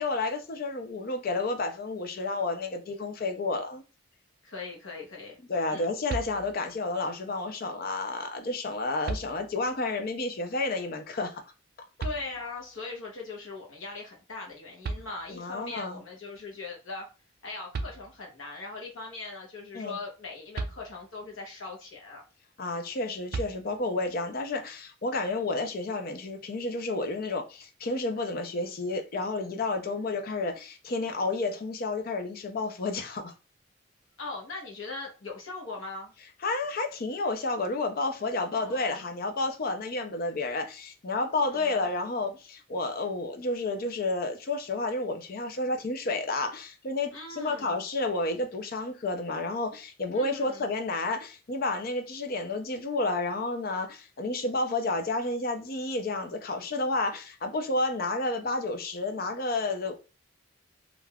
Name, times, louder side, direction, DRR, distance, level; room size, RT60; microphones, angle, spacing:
voice 1, 0.0-3.8 5.5-11.4 15.3-16.0 19.7-20.0 22.6-33.3 36.4-59.9, left 2 dB, 50° left, 0.5 m, -31 dB
voice 2, 4.4-5.4 5.7-5.9 12.0-17.1 17.4-22.2 34.2-36.1 38.5-39.0 41.4-41.9 47.1-47.8 50.1-50.7, left 3 dB, 85° left, 0.9 m, -40 dB
Ganon Kick Bass Drum, 6.1-6.8 8.3-8.4 9.0-9.8 12.0-12.7 14.5-14.6 14.8-15.7 17.4-17.5 17.7-18.5 20.5-21.4 23.3-24.1, right 3 dB, 55° right, 0.4 m, -37 dB
3.4 x 2.4 x 2.3 m
head